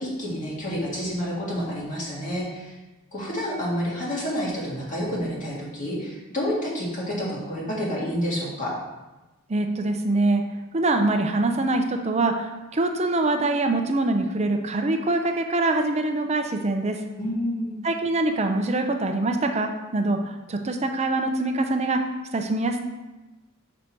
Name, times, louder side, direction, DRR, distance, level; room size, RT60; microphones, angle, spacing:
voice 1, 0.0-2.8 3.1-8.7 17.2-17.8, equal, 35° left, -5 dB, 1.9 m, -29 dB
voice 2, 9.5-10.4 10.7-17.0 17.8-22.0 22.3-22.8, right 2 dB, 30° right, 5 dB, 0.6 m, -24 dB
6.0 x 5.2 x 4.5 m, 1.1 s
head